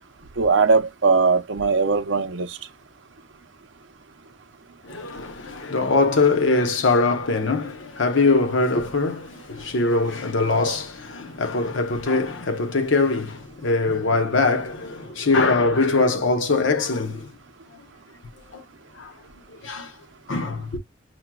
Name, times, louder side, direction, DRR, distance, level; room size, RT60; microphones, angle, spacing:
voice 1, 0.4-2.6, right 4 dB, 70° right, 0.6 m, -20 dB
voice 2, 4.8-17.3 17.7-17.8 18.5-18.6 18.9-19.1 19.6-20.0 20.3-20.8, left 3 dB, 75° left, 0.8 m, -22 dB
5.9 x 2.2 x 2.2 m
head